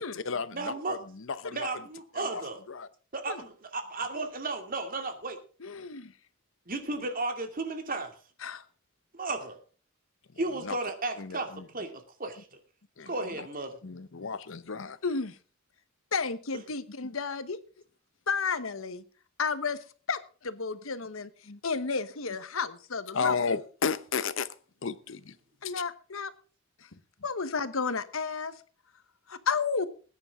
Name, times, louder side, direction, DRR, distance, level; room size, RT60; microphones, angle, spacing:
voice 1, 0.0-1.7 2.1-2.4 2.7-2.9 10.6-10.8 11.2-11.7 13.0-13.5 13.8-15.0 21.5-21.6 23.1-24.5 24.8-25.4 25.6-25.7, left 5 dB, 65° left, 15 dB, 0.8 m, -33 dB
voice 2, 0.5-1.0 1.5-2.6 3.1-5.4 6.7-8.1 9.1-9.6 10.4-12.5 13.1-13.8, right 3 dB, 45° right, 6 dB, 2.5 m, -34 dB
voice 3, 5.6-6.1 8.4-8.6 15.0-15.4 16.1-17.6 18.3-19.0 19.4-21.3 21.6-23.3 25.6-26.3 26.8-28.5 29.3-29.9, left 5 dB, 80° left, 13 dB, 1.1 m, -32 dB
20.5 x 9.9 x 3.7 m, 0.38 s
head